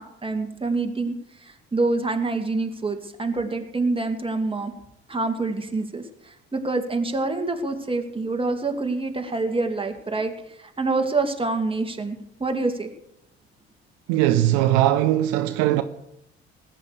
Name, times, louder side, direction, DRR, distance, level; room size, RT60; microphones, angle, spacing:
voice 1, 0.0-4.7 5.1-12.9, right 3 dB, 15° right, 2.6 m, -26 dB
voice 2, 14.1-15.8, right 13 dB, 65° right, 0.8 m, -20 dB
18.5 x 8.9 x 6.8 m
figure-of-eight pair, 55°, 33 cm